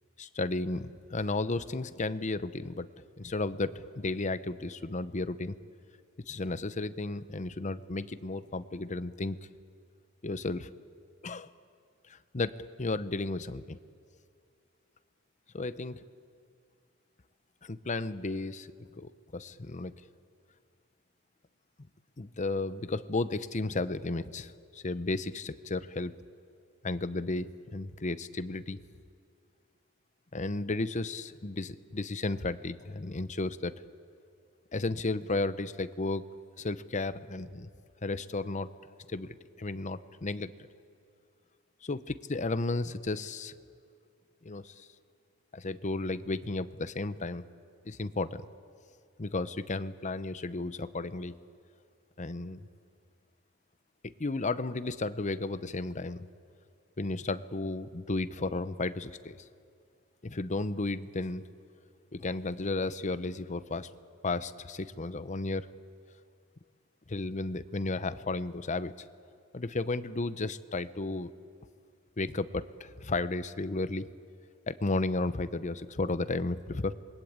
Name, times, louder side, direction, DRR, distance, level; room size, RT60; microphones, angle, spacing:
voice 1, 0.2-2.9 3.2-5.5 6.3-9.4 10.2-10.7 11.2-11.5 12.1-13.8 15.5-16.0 17.6-18.7 19.0-19.9 22.2-26.1 26.8-28.8 30.3-33.8 34.7-36.2 36.6-37.7 38.0-38.7 39.1-40.5 41.8-43.5 44.4-44.9 45.5-47.5 47.9-48.5 49.2-51.3 52.2-52.6 54.0-56.3 57.0-59.4 60.2-61.4 62.1-63.9 64.2-65.7 67.1-69.1 69.5-71.3 72.2-74.1 74.7-76.9, left 2 dB, 35° left, 13 dB, 0.8 m, -33 dB
28.0 x 22.0 x 8.8 m, 2.3 s
head